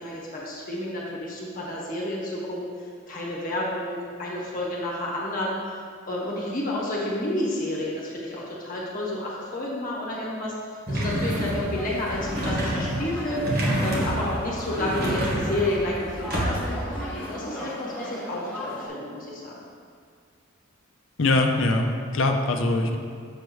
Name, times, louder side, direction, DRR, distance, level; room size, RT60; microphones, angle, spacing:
voice 1, 0.0-5.8 6.1-16.8 17.1-19.5, left 1 dB, 40° left, -5 dB, 1.4 m, -30 dB
sound 1, 10.9-16.9, equal, 45° right, 1.3 m, -28 dB
sound 2, 11.8-18.9, equal, 5° left, 1.1 m, -36 dB
voice 2, 21.2-23.0, left 2 dB, 65° left, 3 dB, 0.6 m, -22 dB
7.2 x 3.4 x 6.3 m, 2.1 s
head